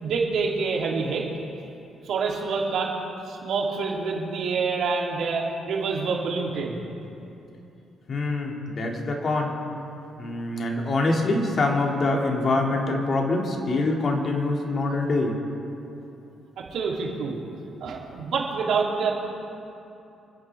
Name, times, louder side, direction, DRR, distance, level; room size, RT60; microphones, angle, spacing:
voice 1, 0.0-1.3 2.0-2.9 3.3-6.8 16.7-17.4 17.8-19.1, right 4 dB, 75° right, -2 dB, 2.9 m, -27 dB
voice 2, 8.1-9.5 10.2-15.4, left 2 dB, 45° left, 1 dB, 2.2 m, -25 dB
28.5 x 10.0 x 3.5 m, 2.8 s
cardioid pair, 90°, 0 cm